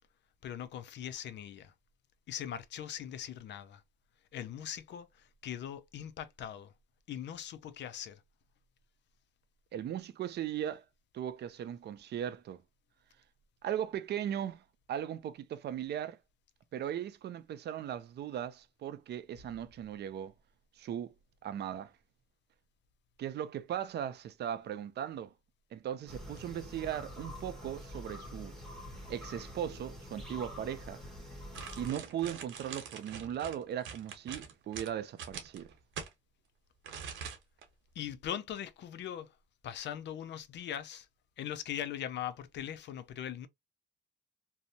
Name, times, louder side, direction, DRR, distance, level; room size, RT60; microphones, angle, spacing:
voice 1, 0.4-1.7 2.3-3.8 4.3-6.7 7.1-8.2 38.0-39.4 39.6-41.1 41.4-43.5, left 10 dB, 65° left, 0.4 m, -40 dB
voice 2, 9.7-10.9 11.1-12.6 13.6-14.6 14.9-16.2 16.7-20.3 20.8-21.1 21.4-21.9 23.2-25.3 25.7-28.5 29.1-31.0 31.8-35.7, right 10 dB, 60° right, 0.4 m, -38 dB
sound 1, 26.1-31.9, left 1 dB, ahead, 1.1 m, -46 dB
sound 2, 31.5-36.1 36.8-37.6 38.0-38.1, right 7 dB, 80° right, 0.8 m, -44 dB
2.6 x 2.0 x 2.6 m
cardioid pair, 90°, 20 cm